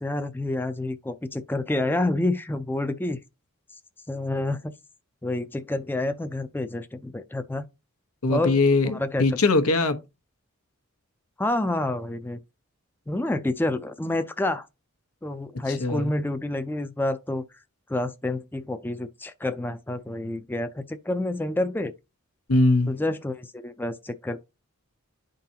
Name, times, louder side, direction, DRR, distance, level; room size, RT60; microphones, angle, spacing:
voice 1, 0.0-3.2 4.1-4.7 5.2-7.6 8.3-9.4 11.4-12.4 13.1-14.7 15.2-17.5 17.9-21.9 22.9-24.4, left 2 dB, 10° left, 0.4 m, -28 dB
voice 2, 8.2-10.0 15.7-16.1 22.5-22.9, left 3 dB, 85° left, 1.0 m, -21 dB
11.5 x 3.9 x 2.8 m
head